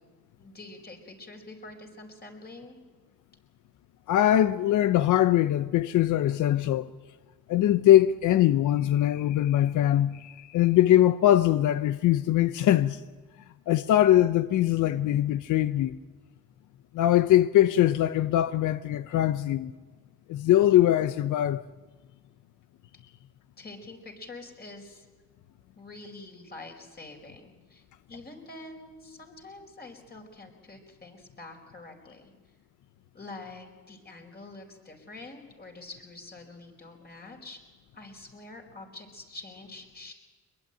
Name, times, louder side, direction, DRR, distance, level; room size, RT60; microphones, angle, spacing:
voice 1, 0.4-2.8 23.6-25.1 25.8-32.3 33.1-37.6 37.9-40.1, left 2 dB, 30° left, 4.9 m, -46 dB
voice 2, 4.1-6.9 7.5-13.0 13.7-16.0 16.9-19.7 20.3-21.6, left 12 dB, 80° left, 0.8 m, -22 dB
22.5 x 21.5 x 9.1 m
cardioid pair, 90°, 30 cm